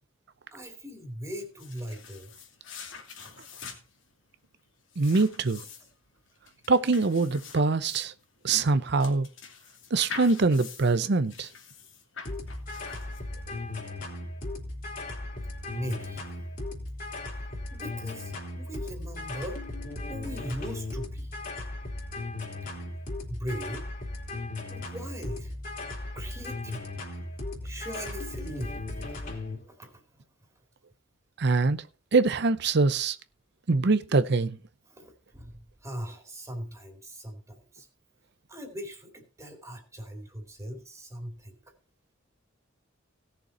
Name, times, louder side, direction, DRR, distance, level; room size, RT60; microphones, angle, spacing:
voice 1, 0.5-2.3 3.2-3.3 15.7-16.2 17.7-19.6 20.1-21.3 23.3-23.9 24.7-25.5 26.1-26.9 27.6-28.8 29.7-30.0 34.9-37.9 38.5-41.7, equal, 15° right, 2.6 m, -39 dB
sound 1, 1.4-13.5, left 6 dB, 70° left, 2.7 m, -45 dB
voice 2, 5.0-5.6 6.7-8.1 8.4-9.3 9.9-11.5 31.4-31.8 32.1-33.2 33.7-34.6, right 3 dB, 60° right, 0.7 m, -24 dB
sound 2, 12.3-29.6, left 2 dB, 45° left, 3.4 m, -37 dB
17.5 x 6.8 x 4.3 m
head